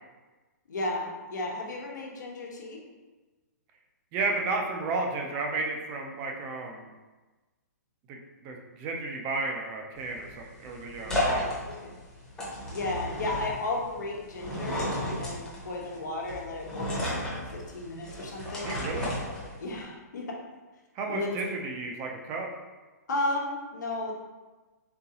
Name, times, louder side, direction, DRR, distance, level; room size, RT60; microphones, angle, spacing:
voice 1, 0.7-2.8 11.3-11.5 11.8-11.9 12.7-18.7 19.6-20.4 21.1-21.5 23.1-24.1, left 2 dB, 85° left, -1 dB, 1.0 m, -34 dB
voice 2, 4.1-6.8 8.1-11.5 18.6-19.1 20.9-22.5, right 3 dB, 20° right, 1 dB, 0.3 m, -33 dB
sound 1, 10.0-19.8, left 1 dB, 5° left, 0.7 m, -34 dB
3.9 x 3.7 x 2.8 m, 1.2 s
hypercardioid pair, 165°, 9 cm